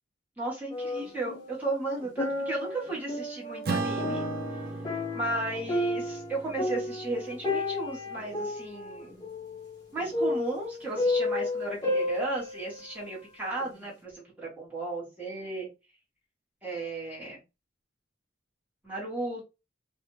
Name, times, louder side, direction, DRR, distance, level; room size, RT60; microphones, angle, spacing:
voice 1, 0.4-4.2 5.1-9.1 9.9-15.7 16.6-17.4 18.8-19.4, right 2 dB, 10° right, -6 dB, 1.1 m, -35 dB
sound 1, 0.7-1.6 2.0-13.1 13.6-13.7, left 2 dB, 20° left, 0.9 m, -32 dB
Acoustic guitar / Strum, 3.7-8.4, right 3 dB, 55° right, 0.5 m, -36 dB
2.4 x 2.1 x 3.0 m, 0.27 s
head